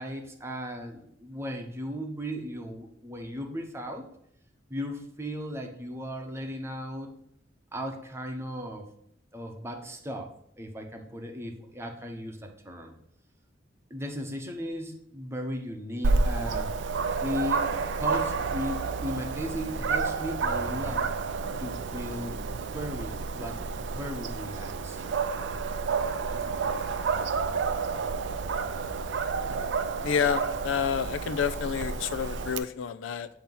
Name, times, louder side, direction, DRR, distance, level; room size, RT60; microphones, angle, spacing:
voice 1, 0.0-4.0 4.7-7.1 7.7-8.9 9.3-10.3 10.6-12.9 13.9-16.7 17.2-21.1 21.6-25.0, equal, 15° right, 2 dB, 0.8 m, -36 dB
Dog, 16.0-32.6, right 4 dB, 70° right, 0.4 m, -30 dB
voice 2, 30.0-33.3, left 7 dB, 85° left, 13 dB, 0.4 m, -29 dB
7.3 x 2.9 x 5.4 m, 0.72 s
head